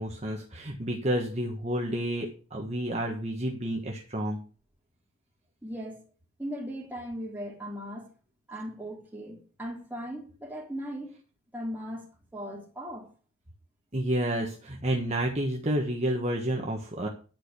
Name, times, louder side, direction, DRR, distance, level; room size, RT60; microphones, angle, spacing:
voice 1, 0.0-4.4 13.9-17.1, right 1 dB, 30° right, 1.4 m, -30 dB
voice 2, 5.6-6.0 6.4-8.1 8.5-11.1 11.5-13.1, equal, 10° right, 3.3 m, -38 dB
11.0 x 5.1 x 8.2 m
head